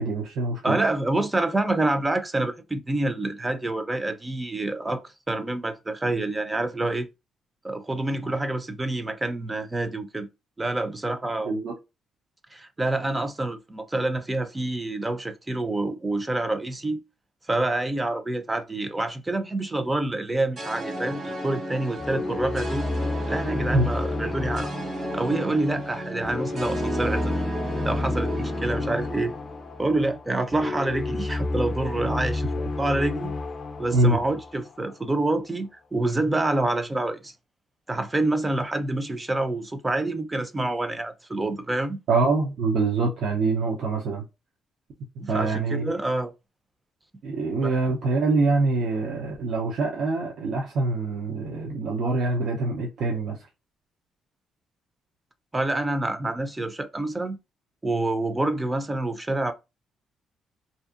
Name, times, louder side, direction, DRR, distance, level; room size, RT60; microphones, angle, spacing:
voice 1, 0.0-0.8 11.5-11.7 23.7-23.9 33.9-34.2 42.1-44.2 45.3-46.0 47.2-53.4, right 3 dB, 70° right, 0.6 m, -25 dB
voice 2, 0.6-5.0 5.3-7.1 7.6-10.3 10.6-11.5 12.5-17.0 17.5-22.9 23.3-24.7 25.1-27.3 27.8-29.3 29.8-33.3 33.8-37.3 37.9-42.0 45.2-46.3 47.6-47.8 55.5-57.4 57.8-59.5, right 2 dB, 15° right, 0.5 m, -27 dB
sound 1, 20.6-29.9, right 1 dB, 50° right, 1.2 m, -34 dB
sound 2, 22.0-35.1, left 2 dB, 50° left, 0.4 m, -31 dB
2.7 x 2.5 x 2.4 m
cardioid pair, 90°, 0 cm